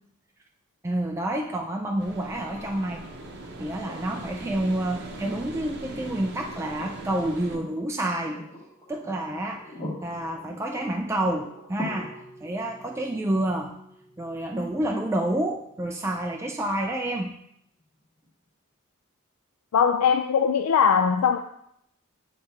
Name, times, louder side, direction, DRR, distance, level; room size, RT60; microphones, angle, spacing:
voice 1, 0.8-3.0 3.6-8.4 8.9-9.7 10.0-13.8 14.2-17.4, right 1 dB, 15° right, 1 dB, 0.4 m, -29 dB
sound 1, 2.0-7.6, right 2 dB, 50° right, 0.7 m, -41 dB
sound 2, 2.6-16.5 18.2-18.3, left 1 dB, 20° left, 1.4 m, -44 dB
voice 2, 19.7-21.4, left 7 dB, 85° left, 6 dB, 0.4 m, -20 dB
7.7 x 3.3 x 4.3 m, 0.74 s
head